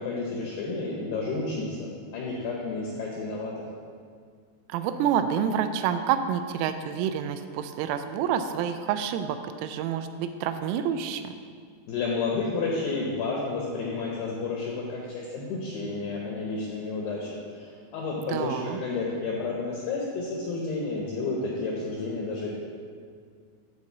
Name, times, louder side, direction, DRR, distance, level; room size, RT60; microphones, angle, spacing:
voice 1, 0.0-3.7 11.9-17.3 17.6-22.5, left 3 dB, 80° left, -3 dB, 2.3 m, -31 dB
voice 2, 4.7-11.3 18.2-18.8, right 8 dB, 85° right, 9 dB, 3.1 m, -28 dB
10.5 x 3.8 x 7.2 m, 2.1 s
omnidirectional pair, 5.9 m